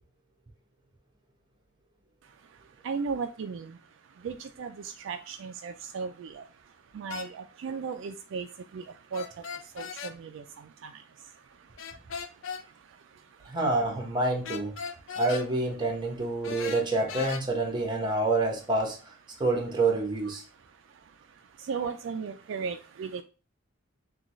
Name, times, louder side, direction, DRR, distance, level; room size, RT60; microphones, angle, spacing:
voice 1, 2.8-3.8 4.2-6.4 6.9-8.5 8.7-8.9 9.1-9.3 9.7-10.9 21.6-23.2, right 5 dB, 65° right, 7 dB, 0.3 m, -35 dB
sound 1, 7.1-7.3 9.1-10.1 11.8-12.6 14.4-15.5 16.4-17.4, left 6 dB, 65° left, 0.5 m, -38 dB
voice 2, 13.5-14.7 15.2-19.0 19.4-20.4, right 2 dB, 25° right, 0 dB, 1.1 m, -27 dB
6.2 x 2.3 x 3.0 m, 0.35 s
head